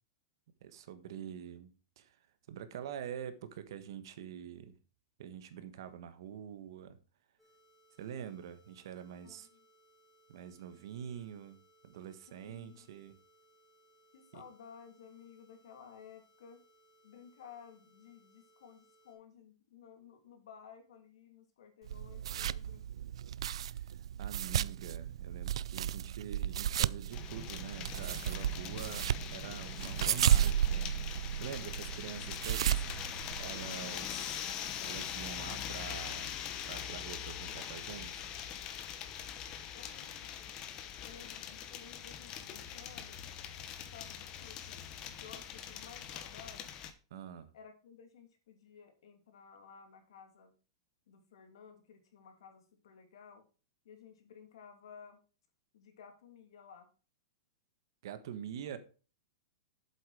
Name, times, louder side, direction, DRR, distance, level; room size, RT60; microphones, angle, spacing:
voice 1, 0.6-1.7 2.0-2.1 2.5-4.8 5.2-7.0 8.0-9.5 10.3-11.6 11.8-13.2 14.3-14.4 23.5-23.7 24.2-31.0 31.4-34.4 34.8-36.4 36.6-38.3 47.1-47.5 58.0-58.8, right 9 dB, 55° right, 1.3 m, -45 dB
sound 1, 7.4-19.1, right 1 dB, 5° left, 3.2 m, -68 dB
voice 2, 9.2-9.6 12.3-13.0 14.1-16.6 17.0-22.8 39.7-40.3 41.0-43.2 43.9-46.7 47.5-50.5 51.1-53.4 53.8-55.2 55.7-56.9, left 7 dB, 65° left, 2.7 m, -55 dB
sound 2, 21.9-33.8, right 10 dB, 90° right, 0.4 m, -33 dB
sound 3, 27.1-46.9, left 9 dB, 20° left, 0.9 m, -43 dB
8.3 x 7.8 x 4.9 m
supercardioid pair, 180°, 3 cm